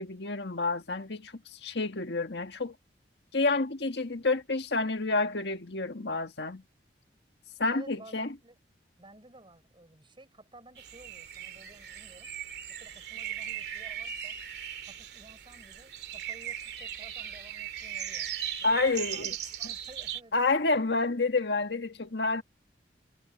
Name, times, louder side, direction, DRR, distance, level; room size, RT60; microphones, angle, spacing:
voice 1, 0.0-2.7 3.3-6.6 7.6-8.3 18.6-19.3 20.3-22.4, left 3 dB, 70° left, 1.7 m, -29 dB
voice 2, 7.7-8.6 9.0-12.3 12.7-14.4 14.8-18.3 18.6-20.9, right 2 dB, 30° right, 6.9 m, -54 dB
sound 1, 10.8-20.2, right 9 dB, 65° right, 2.8 m, -38 dB
head